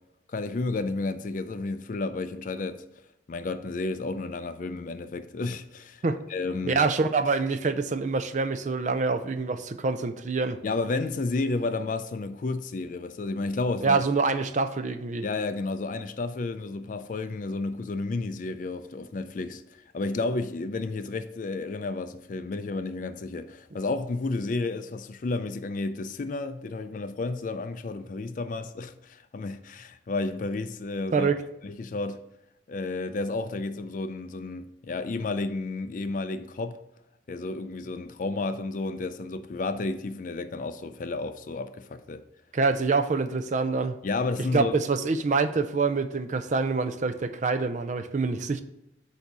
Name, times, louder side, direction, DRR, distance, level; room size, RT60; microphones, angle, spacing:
voice 1, 0.3-2.8 3.3-6.0 6.3-6.8 10.6-14.0 15.2-31.3 31.6-32.2 32.7-36.8 37.3-42.2 44.0-44.7, left 3 dB, 45° left, 0.4 m, -31 dB
voice 2, 6.6-10.6 13.8-15.3 31.1-31.4 42.5-44.0 44.5-48.6, right 4 dB, 40° right, 0.4 m, -26 dB
8.1 x 2.7 x 6.0 m
head